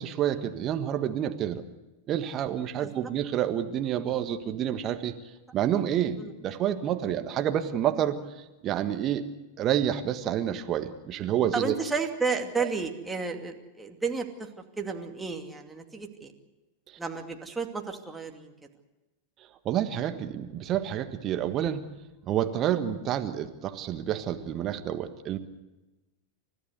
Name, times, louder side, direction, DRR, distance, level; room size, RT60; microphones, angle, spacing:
voice 1, 0.0-1.6 2.1-5.1 5.5-9.2 9.6-11.7 12.6-12.7 16.9-17.0 19.6-21.9 22.3-25.4, right 10 dB, 30° right, 8 dB, 1.5 m, -29 dB
voice 2, 11.5-14.5 14.8-16.3 17.0-18.5, right 4 dB, 10° right, 3 dB, 2.6 m, -32 dB
30.0 x 14.5 x 8.1 m, 1.1 s
figure-of-eight pair, 90°, 0 cm